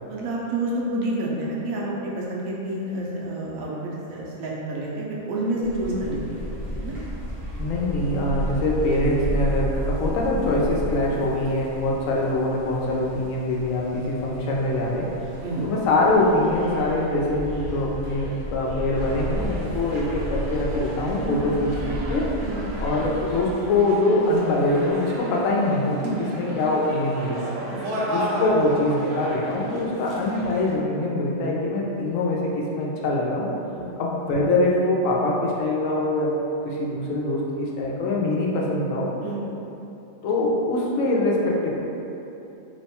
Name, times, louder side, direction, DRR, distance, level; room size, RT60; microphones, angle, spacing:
voice 1, 0.1-3.8 4.1-7.0 15.4-15.6 21.2-21.4 22.4-22.6 26.0-26.2 27.9-28.0 33.7-34.0 39.2-39.5, right 1 dB, 85° right, -4 dB, 1.1 m, -29 dB
sound 1, 5.6-23.5, equal, 25° right, 0.9 m, -33 dB
voice 2, 7.6-15.1 15.6-21.7 22.1-22.3 22.8-27.5 28.1-33.5 34.0-36.4 36.6-39.1 40.2-41.7, left 2 dB, 75° left, -3 dB, 1.0 m, -23 dB
sound 2, 18.9-30.7, equal, 55° right, 0.6 m, -34 dB
3.1 x 2.2 x 4.1 m, 2.8 s
omnidirectional pair, 1.4 m